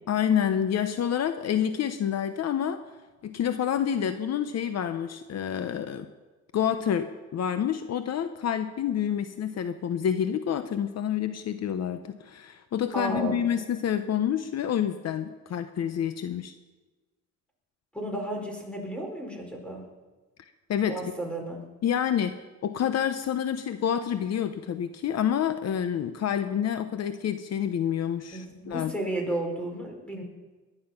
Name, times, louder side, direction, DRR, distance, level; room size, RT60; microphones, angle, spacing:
voice 1, 0.1-2.8 3.2-6.1 6.5-16.5 20.7-21.0 21.8-22.3 22.6-28.9, left 9 dB, 60° left, 10 dB, 0.9 m, -28 dB
voice 2, 12.9-13.4 17.9-19.8 20.9-21.6 28.3-30.2, right 1 dB, 5° left, 1 dB, 4.8 m, -33 dB
20.5 x 11.0 x 5.9 m, 1.2 s
cardioid pair, 90°, 30 cm